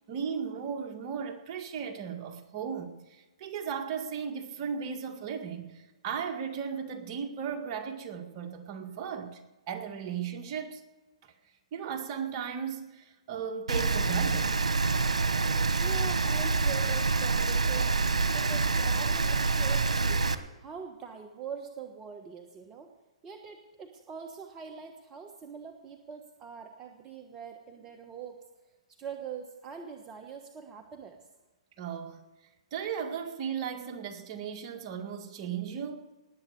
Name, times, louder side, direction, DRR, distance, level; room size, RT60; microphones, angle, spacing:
voice 1, 0.1-9.4 9.7-10.8 11.7-14.5 31.8-32.2 32.7-36.1, right 7 dB, 40° right, 5 dB, 1.9 m, -36 dB
Rain, 13.7-20.4, right 3 dB, 85° right, 1.1 m, -26 dB
voice 2, 15.8-17.9 18.3-20.3 20.6-22.9 23.2-28.4 29.0-31.2, right 6 dB, 20° right, 3 dB, 1.2 m, -43 dB
19.5 x 8.2 x 6.6 m, 1.2 s
hypercardioid pair, 130°, 3 cm